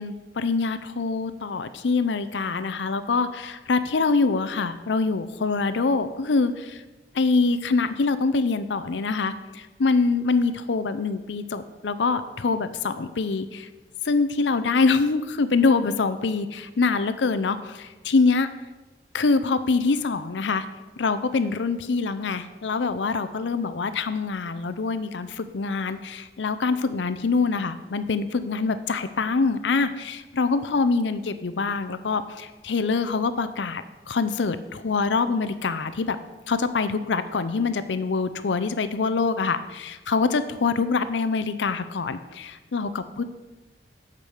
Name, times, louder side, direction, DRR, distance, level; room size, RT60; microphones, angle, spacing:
voice 1, 0.0-6.8 7.1-13.7 14.0-18.5 19.1-20.6 21.0-36.2 36.5-43.2, left 4 dB, 85° left, 12 dB, 0.6 m, -25 dB
8.3 x 5.3 x 6.4 m, 1.2 s
head